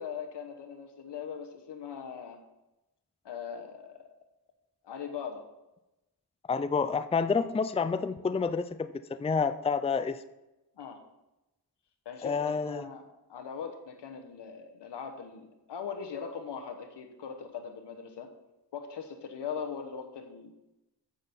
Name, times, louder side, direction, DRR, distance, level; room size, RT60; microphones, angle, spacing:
voice 1, 0.0-2.4 3.2-4.0 4.8-5.4 10.8-11.0 12.0-18.3 18.7-20.5, left 7 dB, 80° left, 5 dB, 1.1 m, -40 dB
voice 2, 6.5-10.2 12.2-12.8, left 5 dB, 15° left, 12 dB, 0.5 m, -29 dB
7.5 x 6.0 x 6.9 m, 0.97 s
cardioid pair, 60°, 42 cm